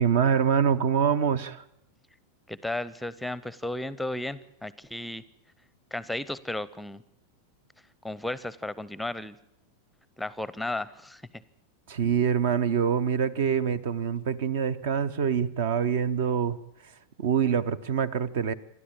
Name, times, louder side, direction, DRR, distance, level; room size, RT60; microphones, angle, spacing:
voice 1, 0.0-1.6 11.9-16.6 17.2-18.5, right 7 dB, 55° right, 16 dB, 0.8 m, -25 dB
voice 2, 2.5-5.2 5.9-7.0 8.0-9.4 10.2-11.2, left 1 dB, 5° left, 19 dB, 0.7 m, -34 dB
28.0 x 12.5 x 8.7 m, 0.87 s
figure-of-eight pair, 90°, 0 cm